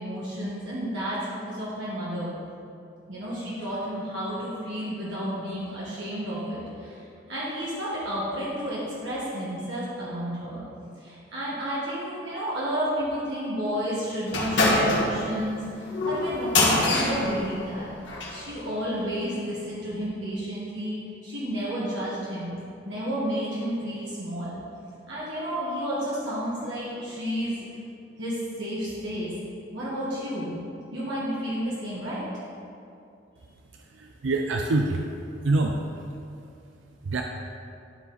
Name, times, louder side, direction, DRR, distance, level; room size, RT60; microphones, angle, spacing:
voice 1, 0.0-2.3 3.1-7.0 7.3-10.6 11.0-17.9 18.3-22.6 22.8-24.6 25.1-27.6 28.2-29.3 29.7-30.6 30.9-32.2, equal, 75° right, -9 dB, 1.9 m, -31 dB
sound 1, 14.3-18.4, left 2 dB, 70° left, 1.7 m, -25 dB
voice 2, 33.9-35.1 35.4-35.7 37.1-37.2, right 2 dB, 90° right, 2 dB, 0.5 m, -25 dB
12.5 x 4.9 x 4.1 m, 2.5 s
head